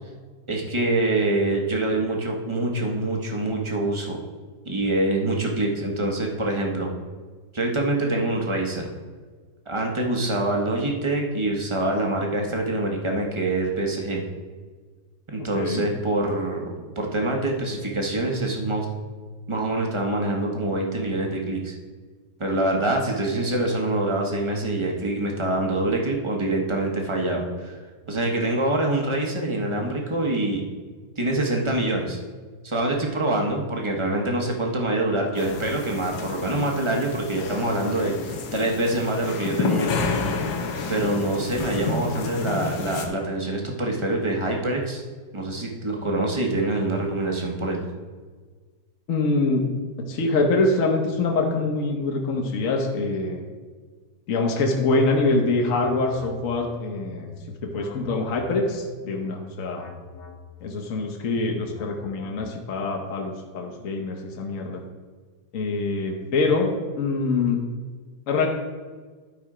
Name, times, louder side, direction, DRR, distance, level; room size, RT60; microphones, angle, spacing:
voice 1, 0.5-4.2 4.6-6.9 7.5-8.9 9.7-14.2 15.3-18.9 19.5-21.7 22.4-27.8 28.1-30.6 31.2-32.2 32.6-39.9 40.9-45.0 45.3-47.9, right 2 dB, 25° right, 0 dB, 0.6 m, -25 dB
voice 2, 15.4-15.9 49.1-49.7 50.0-53.4 54.3-57.3 57.7-59.9 60.6-64.8 65.5-66.7 67.0-67.6 68.3-68.5, left 3 dB, 50° left, 1 dB, 1.1 m, -24 dB
sound 1, 35.4-43.1, left 4 dB, 90° left, 1.7 m, -30 dB
sound 2, 54.8-62.9, left 2 dB, 70° left, 1.4 m, -44 dB
11.5 x 4.3 x 4.9 m, 1.5 s
omnidirectional pair, 2.1 m